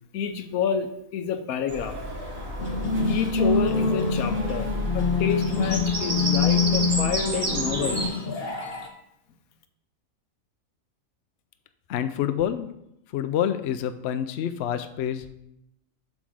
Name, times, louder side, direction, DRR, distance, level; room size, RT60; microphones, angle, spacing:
voice 1, 0.1-1.9 3.1-4.7 4.9-8.0, left 7 dB, 85° left, 8 dB, 1.2 m, -29 dB
Bird vocalization bird call bird song, 1.7-8.1, right 1 dB, 75° right, 2.1 m, -31 dB
sound 1, 2.6-8.9, left 4 dB, 50° left, 1.0 m, -25 dB
voice 2, 11.9-12.7 13.1-15.3, left 10 dB, 65° left, 10 dB, 0.7 m, -27 dB
7.8 x 3.6 x 6.2 m, 0.80 s
omnidirectional pair, 1.5 m